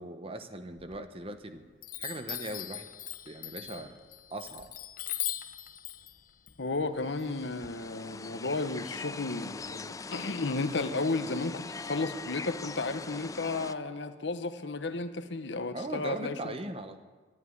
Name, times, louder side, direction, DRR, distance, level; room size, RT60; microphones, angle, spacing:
voice 1, 0.0-1.7 2.0-2.9 3.2-4.0 4.3-4.7 15.7-17.0, right 1 dB, 30° right, 8 dB, 1.0 m, -39 dB
Chime, 0.8-1.4 1.8-7.7, left 13 dB, 50° left, 0.7 m, -40 dB
voice 2, 6.6-16.6, left 3 dB, 75° left, 10 dB, 1.0 m, -33 dB
sound 1, 7.0-13.8, left 4 dB, 20° left, 0.4 m, -42 dB
11.5 x 11.0 x 9.7 m, 1.4 s
head